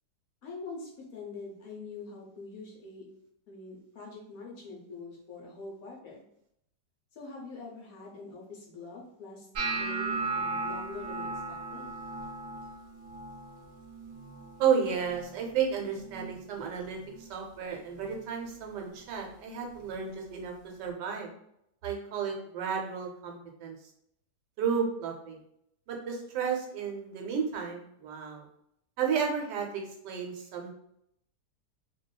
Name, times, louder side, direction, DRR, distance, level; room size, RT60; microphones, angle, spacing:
voice 1, 0.4-3.1 3.5-6.2 7.1-11.9, left 3 dB, 65° left, -3 dB, 0.9 m, -44 dB
sound 1, 9.5-15.6 15.9-16.4 16.8-17.3 18.0-18.2 19.9-20.0, right 3 dB, 70° right, 0.8 m, -37 dB
voice 2, 14.6-17.0 17.3-21.3 21.8-23.7 24.6-25.4 25.9-28.5 29.0-30.7, right 7 dB, 85° right, 1 dB, 1.2 m, -32 dB
2.6 x 2.3 x 2.2 m, 0.75 s
omnidirectional pair, 1.8 m